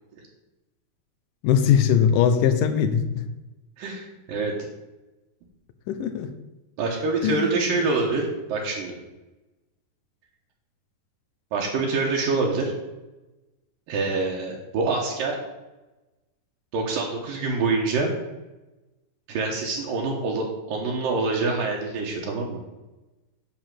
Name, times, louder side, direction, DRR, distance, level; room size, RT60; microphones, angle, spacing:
voice 1, 1.4-3.2 5.9-6.3 7.2-7.9, left 8 dB, 75° left, 9 dB, 2.3 m, -21 dB
voice 2, 3.8-4.5 6.8-9.0 11.5-12.7 13.9-15.4 16.7-18.1 19.3-22.6, right 3 dB, 70° right, -1 dB, 2.8 m, -26 dB
10.5 x 4.6 x 7.5 m, 1.1 s
omnidirectional pair, 4.3 m